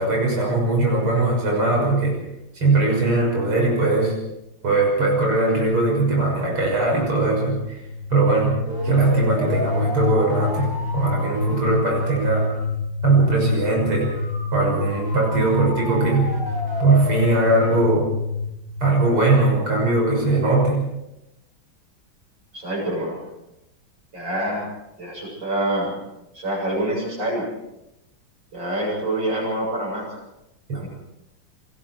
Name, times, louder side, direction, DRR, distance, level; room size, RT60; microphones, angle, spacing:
voice 1, 0.0-2.2 2.5-4.2 4.6-7.8 8.1-12.5 13.0-14.1 14.5-16.3 16.8-18.1 18.8-20.8 30.7-30.9, right 2 dB, 90° right, -2 dB, 7.2 m, -20 dB
sound 1, 7.6-19.5, left 3 dB, 10° right, 6.0 m, -28 dB
voice 2, 22.5-23.2 24.1-24.7 25.0-25.9 26.3-27.5 28.5-30.1 30.7-30.9, right 1 dB, 60° right, -4 dB, 8.7 m, -26 dB
28.0 x 21.0 x 4.7 m, 0.91 s
omnidirectional pair, 2.3 m